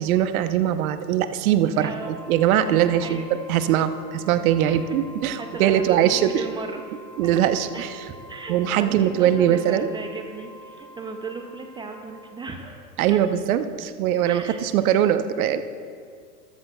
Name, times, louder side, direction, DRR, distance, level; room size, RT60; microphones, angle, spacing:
voice 1, 0.0-3.2 3.5-6.4 7.2-8.0 8.5-9.9 13.0-15.6, right 10 dB, 60° right, 10 dB, 0.9 m, -21 dB
voice 2, 1.8-2.1 3.0-3.3 4.7-5.0 5.3-7.3 7.7-13.2 14.3-14.6, right 4 dB, 10° right, 4 dB, 0.4 m, -36 dB
Wind instrument woodwind instrument, 1.9-12.5, right 1 dB, 5° left, 2.2 m, -46 dB
19.0 x 14.0 x 2.3 m, 2.1 s
hypercardioid pair, 110°, 49 cm